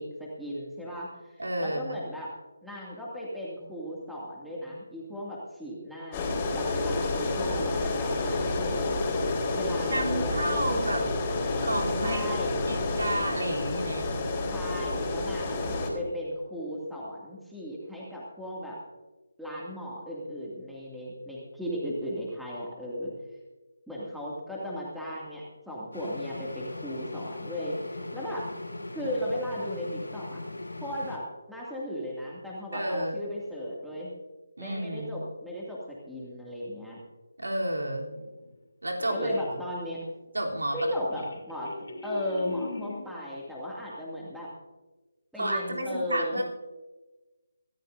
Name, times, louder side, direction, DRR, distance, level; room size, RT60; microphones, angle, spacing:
voice 1, 0.0-2.3 2.6-8.9 9.5-11.0 12.0-12.6 14.5-18.8 19.4-23.1 23.9-28.5 28.9-30.4 30.8-34.1 34.6-37.0 39.1-40.1 40.7-41.7 42.0-44.5 45.3-46.4, equal, ahead, -6 dB, 2.4 m, -36 dB
voice 2, 1.4-2.0 9.9-11.1 11.6-12.3 12.7-14.1 32.7-33.2 34.6-35.2 37.4-38.1 38.8-39.3 40.3-40.8 41.1-41.2 45.4-46.4, right 1 dB, 80° right, -1 dB, 3.3 m, -31 dB
sound 1, 6.1-15.9, left 2 dB, 20° left, 3.7 m, -29 dB
sound 2, 25.9-31.2, left 2 dB, 90° left, 4.0 m, -39 dB
sound 3, 38.1-38.5 39.0-39.5 40.2-40.3 40.7-43.1, left 3 dB, 65° left, 3.2 m, -38 dB
24.0 x 13.5 x 2.7 m, 1.2 s
figure-of-eight pair, 155°, 0 cm